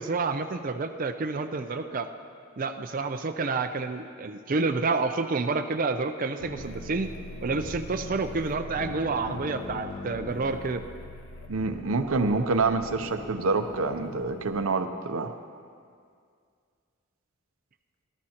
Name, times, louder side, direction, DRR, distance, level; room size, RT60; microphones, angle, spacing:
voice 1, 0.0-2.1 2.6-7.1 7.4-10.8, right 3 dB, 40° right, 7 dB, 0.5 m, -29 dB
sound 1, 6.4-14.6, left 1 dB, 85° left, 1.2 m, -41 dB
voice 2, 11.5-15.3, right 3 dB, 80° right, 8 dB, 0.7 m, -27 dB
20.0 x 12.5 x 2.9 m, 2.2 s
head